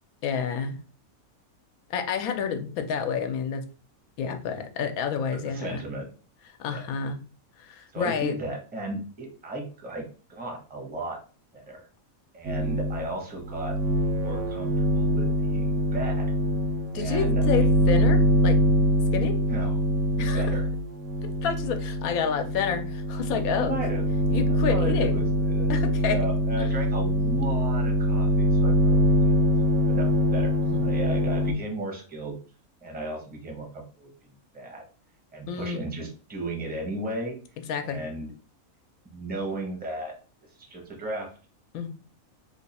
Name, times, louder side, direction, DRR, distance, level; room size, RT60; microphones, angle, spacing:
voice 1, 0.2-0.8 1.9-3.6 4.2-5.8 6.6-7.2 7.6-8.3 16.9-18.6 19.1-19.4 20.2-20.4 21.4-23.8 24.3-25.2 25.7-26.2 26.6-26.7 30.6-30.9 35.5-35.8 37.7-38.0 41.7-41.9, left 7 dB, 90° left, 6 dB, 1.1 m, -29 dB
voice 2, 5.4-6.1 6.7-6.9 7.9-11.2 11.5-11.9 12.3-13.8 14.1-16.3 16.9-17.7 19.5-19.8 20.3-20.7 23.5-24.0 24.5-25.7 26.1-29.3 29.7-32.4 32.8-34.1 34.5-34.8 35.3-37.4 37.8-38.3 39.0-40.2 40.6-41.3, right 2 dB, 10° right, 0 dB, 0.5 m, -35 dB
sound 1, 12.5-13.1 13.4-31.5, left 1 dB, 80° right, 1.0 m, -24 dB
3.0 x 2.2 x 4.0 m, 0.37 s
omnidirectional pair, 1.5 m